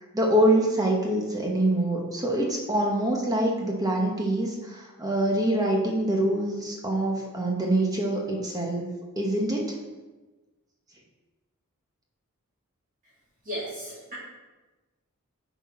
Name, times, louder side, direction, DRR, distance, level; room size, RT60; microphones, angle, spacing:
voice 1, 0.1-8.9 9.2-9.6, right 1 dB, 15° right, -1 dB, 0.9 m, -25 dB
voice 2, 13.4-14.1, equal, 35° right, -8 dB, 2.2 m, -35 dB
9.9 x 4.1 x 4.2 m, 1.2 s
head